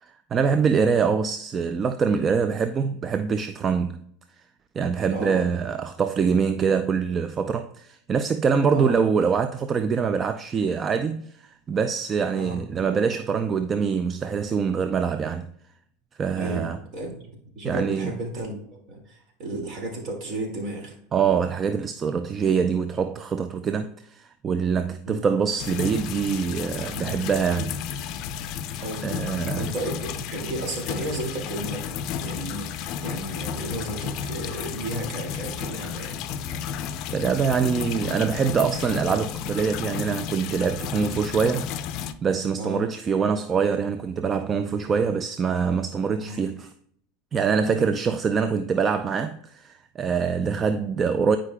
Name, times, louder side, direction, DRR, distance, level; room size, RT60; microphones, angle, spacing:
voice 1, 0.0-4.0 4.8-15.5 16.2-16.8 17.6-18.1 21.1-27.8 28.7-29.7 37.1-41.7 42.0-46.7 47.3-51.4, right 6 dB, 30° right, 0.3 m, -24 dB
voice 2, 5.1-5.4 8.7-9.0 12.3-12.6 16.4-16.7 16.9-17.1 17.6-18.6 18.9-21.0 25.1-25.3 28.8-29.1 29.6-36.2 42.6-42.8 46.2-46.4 47.7-47.9, right 1 dB, 50° right, 2.1 m, -33 dB
sound 1, 25.6-42.1, left 8 dB, 50° left, 0.4 m, -32 dB
9.7 x 5.0 x 2.2 m
supercardioid pair, 115°, 0 cm